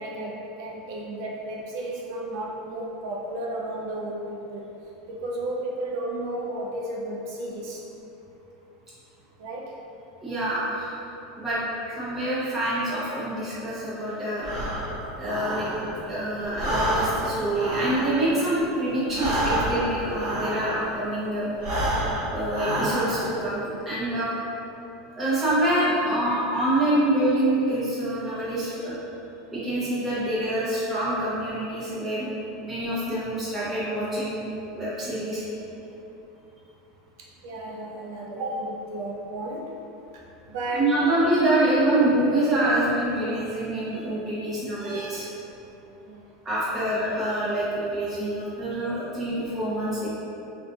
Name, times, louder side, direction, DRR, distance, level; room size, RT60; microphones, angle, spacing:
voice 1, 0.0-4.2 4.5-4.6 5.1-7.8 9.4-9.8 11.9-12.1 24.6-24.8 37.4-39.7 40.5-41.0 46.0-46.2, right 1 dB, 70° right, -3 dB, 0.4 m, -33 dB
voice 2, 10.2-10.9 11.4-11.6 12.0-14.6 15.2-15.7 16.1-21.5 22.3-24.4 25.1-28.9 29.5-32.3 32.6-34.5 34.7-35.4 40.7-45.3 46.4-50.1, right 1 dB, 15° right, -10 dB, 0.8 m, -26 dB
Breathing, 14.4-16.1 16.4-21.0 21.5-23.4, right 1 dB, 45° right, 1.2 m, -28 dB
2.5 x 2.5 x 3.4 m, 2.9 s
supercardioid pair, 175°, 2 cm